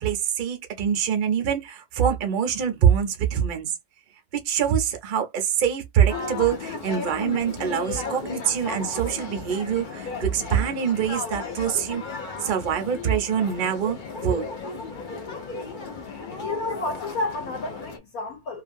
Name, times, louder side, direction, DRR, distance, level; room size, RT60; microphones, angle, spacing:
voice 1, 0.0-3.7 4.3-14.5, right 8 dB, 70° right, 0.4 m, -24 dB
sound 1, 6.1-18.0, left 4 dB, 80° left, 0.4 m, -35 dB
voice 2, 16.4-18.6, left 2 dB, 65° left, 1.0 m, -30 dB
2.8 x 2.4 x 2.5 m
omnidirectional pair, 1.9 m